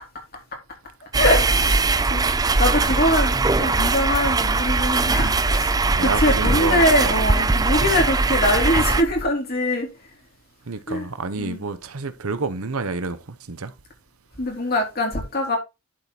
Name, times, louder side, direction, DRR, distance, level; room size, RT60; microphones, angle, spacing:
sound 1, 1.1-9.0, right 3 dB, 15° right, 0.4 m, -20 dB
voice 1, 1.2-1.8 2.0-9.9 10.9-11.0 11.4-11.6 14.4-15.6, left 1 dB, 45° left, 3.3 m, -23 dB
voice 2, 6.0-7.2 10.7-13.7, right 3 dB, 80° right, 1.0 m, -29 dB
11.5 x 4.5 x 4.1 m
head